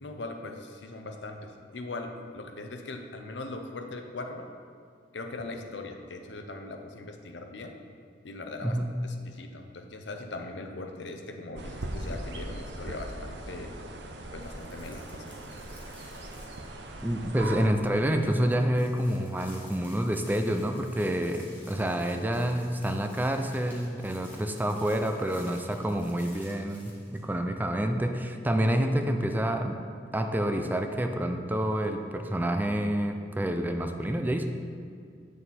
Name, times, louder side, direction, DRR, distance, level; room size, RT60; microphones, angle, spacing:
voice 1, 0.0-4.5 5.1-7.7 8.2-8.8 9.0-13.7 14.3-15.3, left 2 dB, 75° left, 5 dB, 0.8 m, -40 dB
voice 2, 8.6-8.9 17.0-29.8 30.1-34.5, right 1 dB, 10° right, 5 dB, 0.4 m, -28 dB
sound 1, 11.6-17.7, right 1 dB, 70° right, 0.7 m, -39 dB
sound 2, 14.4-17.0 17.3-17.4 17.7-27.2, left 1 dB, 10° left, 1.9 m, -53 dB
8.9 x 6.5 x 4.3 m, 2.2 s
head